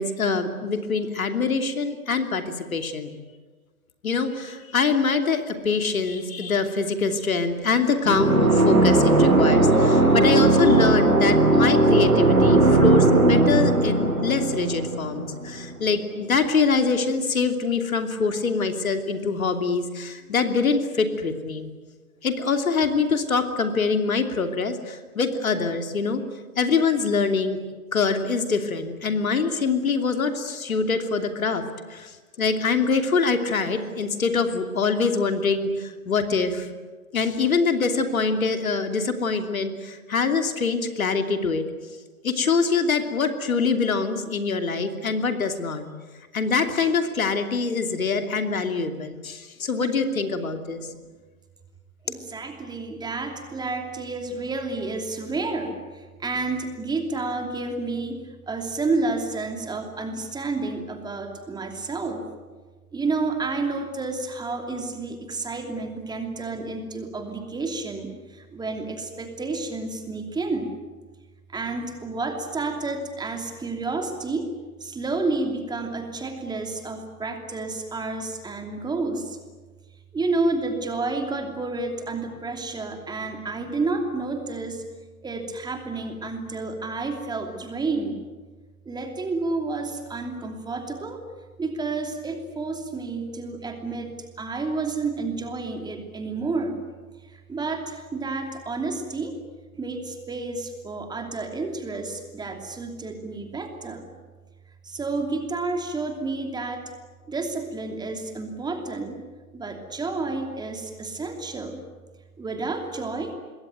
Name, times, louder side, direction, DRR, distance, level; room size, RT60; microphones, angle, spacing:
voice 1, 0.0-3.1 4.0-21.7 22.2-26.2 26.6-27.6 27.9-31.6 31.9-36.7 37.1-41.6 42.2-45.9 46.3-50.9, left 4 dB, 65° left, 6 dB, 2.9 m, -24 dB
sound 1, 8.1-15.7, right 2 dB, 80° right, 5.8 m, -18 dB
voice 2, 52.0-62.2 62.9-70.8 71.5-74.5 74.8-79.4 80.1-84.9 85.2-88.2 88.8-91.2 91.6-96.8 97.2-99.3 99.8-104.1 104.8-106.8 107.3-109.2 109.5-111.8 112.4-113.3, right 3 dB, 10° right, 4 dB, 2.8 m, -30 dB
26.5 x 21.5 x 9.3 m, 1.4 s
figure-of-eight pair, 110°, 44 cm